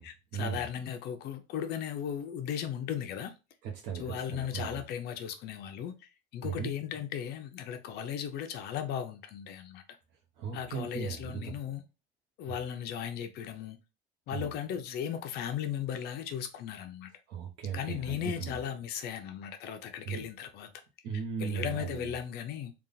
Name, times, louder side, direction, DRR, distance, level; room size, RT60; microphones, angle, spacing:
voice 1, 0.0-3.3 3.9-5.9 6.3-9.8 10.5-11.8 12.4-13.8 14.3-17.1 17.7-20.7 21.4-22.7, left 9 dB, 55° left, 0.7 m, -36 dB
voice 2, 3.6-4.8 6.4-6.7 10.4-11.5 12.5-12.6 14.3-14.5 17.3-18.6 20.1-20.2 21.0-22.1, right 7 dB, 65° right, 1.0 m, -37 dB
3.5 x 2.4 x 4.0 m
cardioid pair, 165°, 20 cm